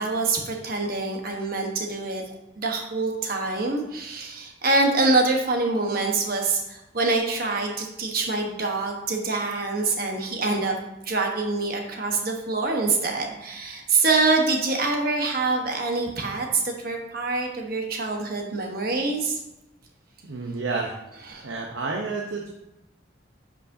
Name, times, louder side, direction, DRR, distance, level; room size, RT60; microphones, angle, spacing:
voice 1, 0.0-2.2 2.6-10.8 11.0-19.4 21.3-21.5, right 3 dB, 50° right, 1 dB, 1.2 m, -25 dB
voice 2, 20.2-21.0 21.4-22.5, right 3 dB, 85° right, 0 dB, 0.8 m, -30 dB
9.9 x 5.2 x 2.7 m, 0.91 s
head